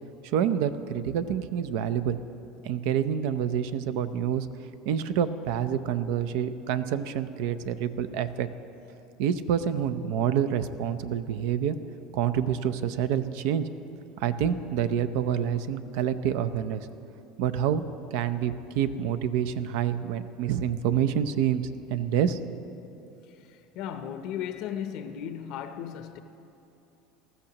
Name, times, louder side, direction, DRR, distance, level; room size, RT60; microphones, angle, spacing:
voice 1, 0.2-2.2 2.6-4.5 4.9-8.5 9.2-11.8 12.1-13.7 14.2-16.9 17.4-17.8 18.1-21.6 21.9-22.6, right 9 dB, 75° right, 0.6 m, -27 dB
voice 2, 23.3-26.2, left 9 dB, 60° left, 0.6 m, -36 dB
19.5 x 14.0 x 2.9 m
supercardioid pair, 130°, 0 cm